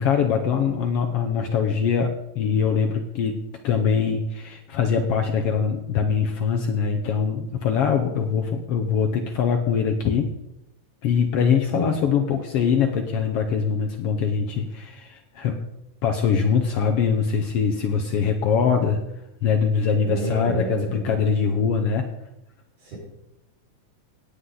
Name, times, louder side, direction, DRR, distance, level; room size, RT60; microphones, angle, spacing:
voice 1, 0.0-10.3 11.0-15.7 16.0-19.0 19.4-22.1, left 6 dB, 80° left, 4 dB, 1.3 m, -23 dB
voice 2, 20.0-21.2 22.8-23.0, right 2 dB, 80° right, -9 dB, 6.3 m, -30 dB
17.5 x 8.2 x 3.9 m, 0.88 s
omnidirectional pair, 3.6 m